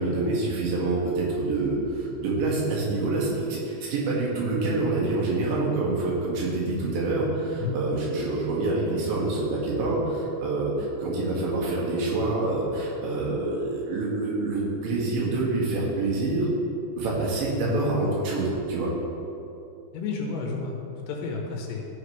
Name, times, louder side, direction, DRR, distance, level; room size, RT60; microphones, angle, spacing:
voice 1, 0.0-16.5 17.0-18.9, right 2 dB, 85° right, -4 dB, 4.2 m, -26 dB
voice 2, 19.9-21.9, left 5 dB, 75° left, 0 dB, 3.1 m, -31 dB
14.0 x 7.4 x 3.2 m, 2.7 s
omnidirectional pair, 5.1 m